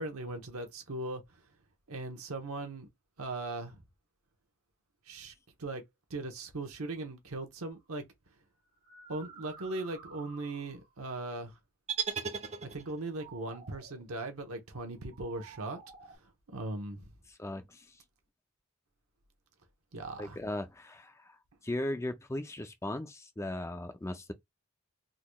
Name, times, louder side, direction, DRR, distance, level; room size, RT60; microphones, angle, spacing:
voice 1, 0.0-1.4 1.9-2.9 3.2-3.8 5.1-5.3 5.6-5.8 6.1-8.0 9.1-11.6 12.6-17.1 19.9-20.4, right 2 dB, 85° right, 1.0 m, -39 dB
sound 1, 7.7-7.9 8.7-11.0 12.9-14.1 15.0-16.2, right 4 dB, 55° right, 1.4 m, -53 dB
sound 2, 11.9-13.2, right 6 dB, 30° right, 0.7 m, -36 dB
voice 2, 17.4-17.9 20.2-21.4 21.6-24.3, left 1 dB, 15° left, 0.4 m, -37 dB
3.8 x 3.1 x 2.3 m
head